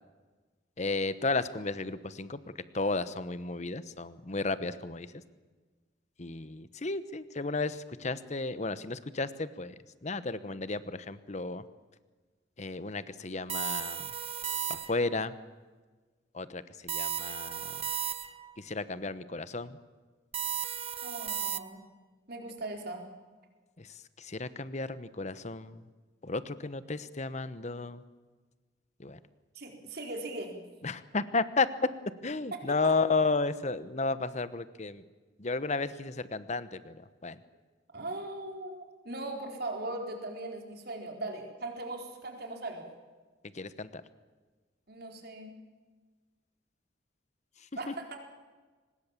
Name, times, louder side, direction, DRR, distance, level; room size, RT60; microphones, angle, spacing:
voice 1, 0.8-5.1 6.2-11.6 12.6-14.1 14.7-15.3 16.3-17.8 18.6-19.8 23.8-25.9 26.2-28.0 29.0-29.2 30.8-31.9 32.2-35.0 35.4-37.4 43.5-44.0 47.9-48.0, left 3 dB, 40° left, 14 dB, 1.0 m, -33 dB
sound 1, 13.5-15.2 16.9-18.5 20.3-21.6, right 9 dB, 30° right, 0.9 m, -35 dB
voice 2, 21.0-21.8 22.3-23.0 29.5-30.5 32.8-32.9 37.9-42.9 44.9-45.5 47.8-48.2, right 2 dB, 55° right, 3 dB, 4.2 m, -39 dB
24.0 x 20.5 x 7.4 m, 1.4 s
head